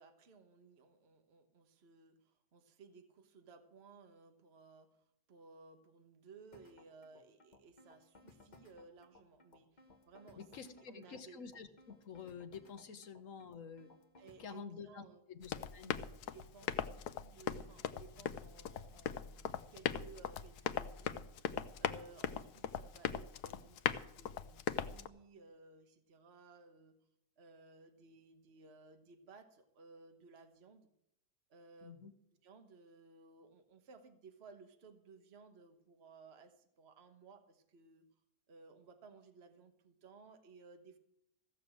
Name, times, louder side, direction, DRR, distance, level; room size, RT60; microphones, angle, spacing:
voice 1, 0.0-11.6 14.2-15.2 15.5-27.0 27.4-30.9 31.5-32.1 32.4-38.0 38.5-41.0, right 4 dB, 45° right, 7 dB, 1.4 m, -59 dB
sound 1, 6.5-14.5, left 2 dB, 30° left, 1.4 m, -62 dB
voice 2, 10.4-13.9 14.4-16.0 31.8-32.1, left 6 dB, 55° left, 9 dB, 1.4 m, -49 dB
Run, 15.4-25.1, left 9 dB, 80° left, 1.2 m, -40 dB
15.5 x 6.8 x 7.7 m, 0.79 s
omnidirectional pair, 1.7 m